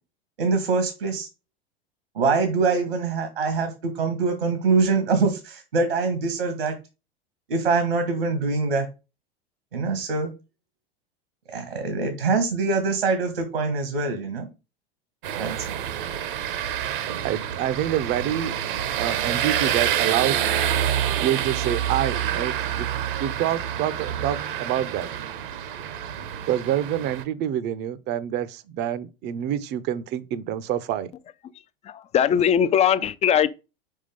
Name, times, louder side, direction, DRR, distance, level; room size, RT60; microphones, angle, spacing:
voice 1, 0.4-1.3 2.1-6.7 7.5-8.9 9.7-10.3 11.5-14.5 15.4-15.7, right 4 dB, 80° right, 1.6 m, -24 dB
sound 1, 15.2-27.2, right 10 dB, 60° right, 1.0 m, -27 dB
voice 2, 17.2-18.5 19.0-20.4 21.2-22.9 23.2-25.1 26.5-31.1, right 11 dB, 35° right, 0.7 m, -27 dB
voice 3, 31.9-33.5, left 9 dB, 20° left, 0.5 m, -20 dB
5.5 x 4.9 x 5.2 m
figure-of-eight pair, 90°, 30 cm